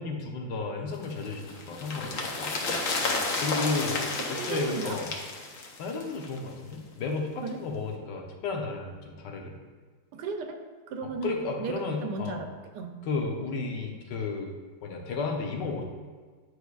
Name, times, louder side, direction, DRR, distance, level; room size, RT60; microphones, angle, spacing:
voice 1, 0.0-2.8 3.4-5.1 5.8-9.6 11.0-12.4 13.0-14.5 14.8-15.8, left 4 dB, 90° left, 2 dB, 1.5 m, -33 dB
sound 1, 1.0-6.5 6.7-6.8, left 3 dB, 60° left, 1.1 m, -32 dB
voice 2, 4.2-5.0 7.4-7.6 10.1-10.6 10.9-13.0, right 4 dB, 80° right, 5 dB, 1.2 m, -35 dB
9.6 x 4.7 x 2.4 m, 1.5 s
omnidirectional pair, 1.8 m